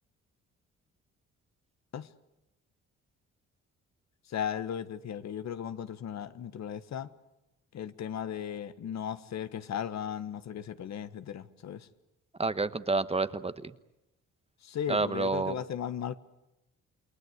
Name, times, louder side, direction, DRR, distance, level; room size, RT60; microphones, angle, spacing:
voice 1, 4.3-7.1 7.7-11.9 14.6-16.2, left 9 dB, 65° left, 12 dB, 1.5 m, -36 dB
voice 2, 12.4-13.7 14.9-15.6, right 3 dB, 20° right, 12 dB, 1.2 m, -29 dB
28.5 x 21.5 x 8.2 m, 0.93 s
cardioid pair, 90°, 30 cm